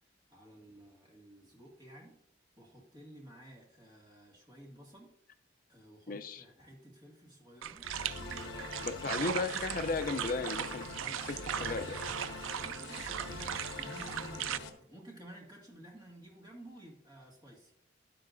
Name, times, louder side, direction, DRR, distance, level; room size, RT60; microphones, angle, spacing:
voice 1, 0.0-2.2 2.6-5.2 5.7-9.2 12.6-17.7, right 1 dB, 20° right, -2 dB, 1.9 m, -53 dB
voice 2, 6.1-6.4 8.8-10.9 11.3-12.0, left 3 dB, 45° left, 9 dB, 0.5 m, -35 dB
sound 1, 7.6-14.6, right 10 dB, 85° right, 0.4 m, -39 dB
sound 2, 7.8-14.7, left 3 dB, 70° left, 1.3 m, -44 dB
11.5 x 10.5 x 2.6 m, 0.74 s
head